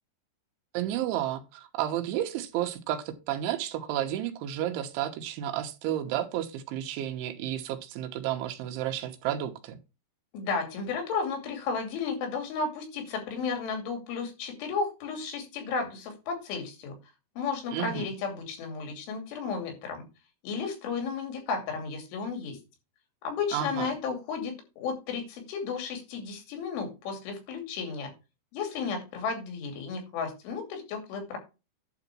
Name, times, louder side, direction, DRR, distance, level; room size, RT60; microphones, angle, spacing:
voice 1, 0.7-9.8 17.7-18.1 23.5-23.9, right 11 dB, 85° right, 7 dB, 3.5 m, -32 dB
voice 2, 10.3-17.0 17.4-20.0 20.4-22.6 23.2-28.1 28.5-31.4, left 5 dB, 85° left, 4 dB, 5.1 m, -33 dB
11.5 x 4.0 x 6.1 m, 0.28 s
omnidirectional pair, 5.3 m